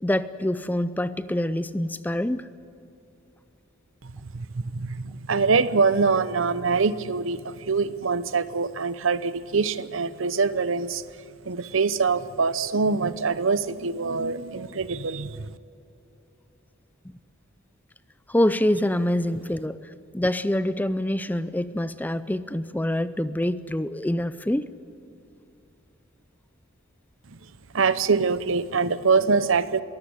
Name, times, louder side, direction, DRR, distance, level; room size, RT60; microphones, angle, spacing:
voice 1, 0.0-2.5 17.1-17.2 18.3-19.8 20.1-24.7, left 1 dB, 10° left, 14 dB, 0.5 m, -25 dB
voice 2, 4.3-11.0 11.5-15.4 27.7-29.8, right 4 dB, 65° right, 15 dB, 0.8 m, -24 dB
23.0 x 16.5 x 9.6 m, 2.8 s
head